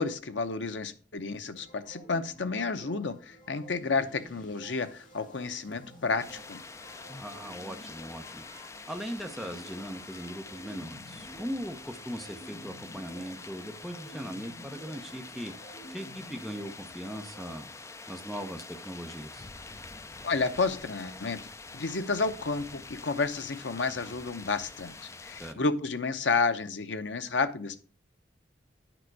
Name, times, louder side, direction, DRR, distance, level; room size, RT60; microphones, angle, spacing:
voice 1, 0.0-6.6 20.2-21.4 21.7-27.8, left 4 dB, 85° left, 10 dB, 0.8 m, -31 dB
sound 1, 1.5-17.5, equal, 45° left, 1.6 m, -51 dB
sound 2, 6.2-25.5, left 3 dB, 15° left, 0.4 m, -46 dB
voice 2, 7.1-17.7 18.1-19.5 25.4-25.6, equal, ahead, 3 dB, 0.8 m, -39 dB
9.1 x 5.2 x 4.7 m, 0.39 s
head